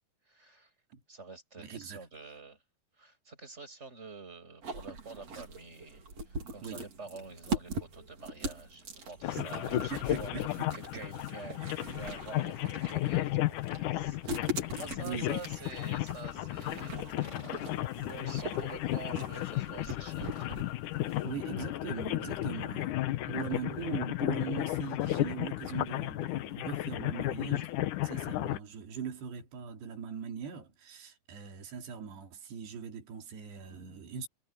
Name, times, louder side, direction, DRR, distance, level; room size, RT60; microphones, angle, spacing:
voice 1, 0.3-0.7 1.1-2.6 3.0-17.2 17.5-17.7 18.0-20.7, right 3 dB, 15° right, 7.3 m, -48 dB
voice 2, 1.6-2.0 6.6-6.8 9.4-9.5 9.9-10.7 11.6-12.1 14.4-14.5 14.8-15.7 21.2-23.0 23.3-27.8 28.0-34.3, right 6 dB, 90° right, 5.2 m, -41 dB
sound 1, 4.6-21.4, right 2 dB, 40° right, 4.4 m, -42 dB
sound 2, 8.8-23.8, left 3 dB, 35° left, 1.2 m, -55 dB
sound 3, 9.2-28.6, left 15 dB, 80° left, 1.9 m, -34 dB
omnidirectional pair, 4.6 m